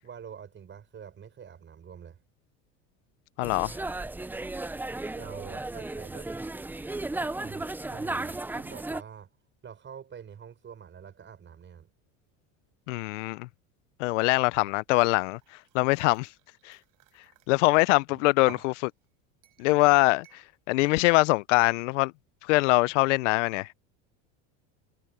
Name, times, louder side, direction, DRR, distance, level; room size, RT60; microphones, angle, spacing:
voice 1, 0.0-2.2 5.1-6.3 7.4-9.3 9.6-11.9, right 7 dB, 30° right, 6.8 m, -46 dB
voice 2, 3.4-3.7 12.9-13.5 14.0-15.4 15.7-16.3 16.6-16.8 17.5-18.9 19.6-22.1 22.4-23.7, left 23 dB, 80° left, 0.6 m, -23 dB
sound 1, 3.4-9.0, right 2 dB, 5° right, 0.6 m, -35 dB
sound 2, 15.2-17.5 18.1-18.8 19.4-19.8 20.2-20.5, right 20 dB, 60° right, 5.2 m, -53 dB
supercardioid pair, 110°, 36 cm